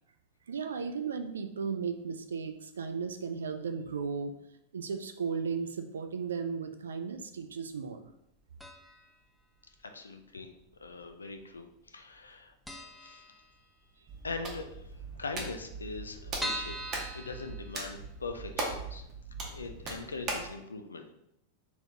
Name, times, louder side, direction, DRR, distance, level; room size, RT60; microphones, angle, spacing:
voice 1, 0.5-4.3 4.7-8.0, right 5 dB, 70° right, 7 dB, 0.4 m, -35 dB
sound 1, 8.6-9.1 9.4-9.5 10.4-11.1 11.4-11.6 11.9-12.0 12.3-12.4 12.7-14.0 14.4-14.5 14.7-14.8 15.0-15.1 15.6-18.2 18.7-18.8 19.2-19.3, equal, ahead, 0.4 m, -41 dB
voice 2, 9.8-10.5 10.8-13.3 14.2-14.9 15.2-19.1 19.4-21.1, left 3 dB, 75° left, 6 dB, 0.4 m, -42 dB
Hands, 14.1-20.5, right 3 dB, 30° right, 1.0 m, -40 dB
3.4 x 3.0 x 3.5 m, 0.80 s
figure-of-eight pair, 90°, 0 cm